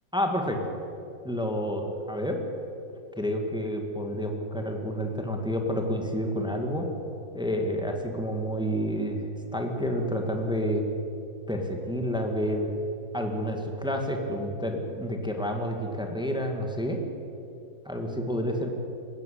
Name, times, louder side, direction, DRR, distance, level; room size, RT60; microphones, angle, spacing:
voice 1, 0.1-0.7 1.2-2.4 3.1-6.9 7.3-10.8 11.5-12.7 13.1-17.0 17.8-18.7, equal, ahead, 3 dB, 2.1 m, -29 dB
19.5 x 17.0 x 8.6 m, 2.7 s
omnidirectional pair, 2.0 m